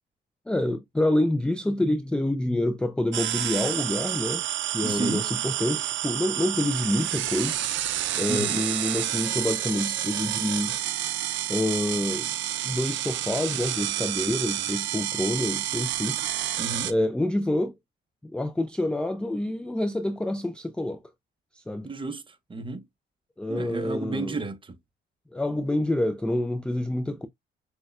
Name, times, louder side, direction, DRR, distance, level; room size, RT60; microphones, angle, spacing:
voice 1, 0.5-4.5 4.7-7.6 8.2-10.8 11.5-12.3 12.6-16.2 16.8-17.8 18.2-21.0 21.5-21.9 23.4-24.4 25.3-27.3, left 1 dB, 5° left, 0.3 m, -27 dB
sound 1, 3.1-16.9, right 13 dB, 70° right, 0.5 m, -29 dB
voice 2, 4.8-5.3 8.3-8.6 16.6-16.9 21.8-22.9 23.5-24.7, right 3 dB, 25° right, 0.8 m, -32 dB
6.1 x 2.2 x 2.3 m
cardioid pair, 90°, 20 cm